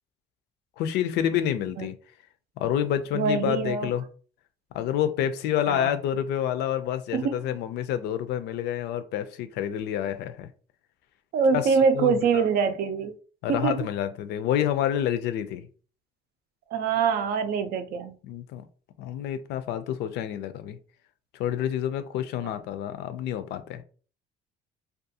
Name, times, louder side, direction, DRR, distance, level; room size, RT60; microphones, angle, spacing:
voice 1, 0.8-2.0 2.6-4.0 4.7-10.5 11.5-12.4 13.4-15.6 18.2-18.6 19.0-20.8 21.4-23.8, left 10 dB, 80° left, 0.4 m, -28 dB
voice 2, 3.1-3.9 5.7-5.9 7.1-7.4 11.3-13.1 13.5-13.7 16.7-18.1 22.4-22.5, right 5 dB, 65° right, 0.4 m, -24 dB
2.4 x 2.3 x 2.7 m
cardioid pair, 110°, 17 cm